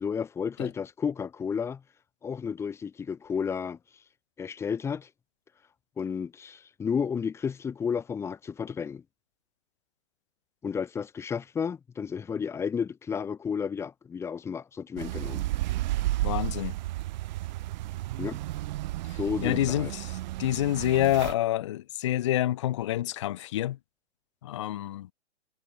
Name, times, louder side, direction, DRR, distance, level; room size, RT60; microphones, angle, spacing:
voice 1, 0.0-1.8 2.2-3.8 4.4-5.1 6.0-9.0 10.6-15.4 18.2-18.4 19.1-19.9, left 6 dB, 5° left, 1.1 m, -32 dB
sound 1, 15.0-21.3, right 16 dB, 40° right, 3.4 m, -32 dB
voice 2, 16.2-16.7 19.1-23.8 24.4-25.1, left 14 dB, 25° left, 0.5 m, -28 dB
hypercardioid pair, 140°, 35 cm